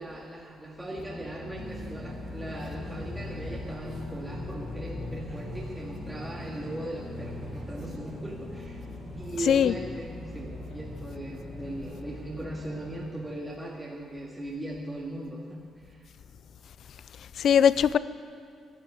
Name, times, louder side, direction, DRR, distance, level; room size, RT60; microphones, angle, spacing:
voice 1, 0.0-8.9 9.2-16.1, right 1 dB, 15° right, 2.1 m, -39 dB
sound 1, 0.9-13.1, left 2 dB, 30° left, 1.8 m, -41 dB
sound 2, 1.6-12.2, right 2 dB, 55° right, 2.3 m, -46 dB
voice 2, 9.3-9.7 17.2-18.0, left 8 dB, 65° left, 0.5 m, -21 dB
11.5 x 11.5 x 9.4 m
cardioid pair, 90°, 0 cm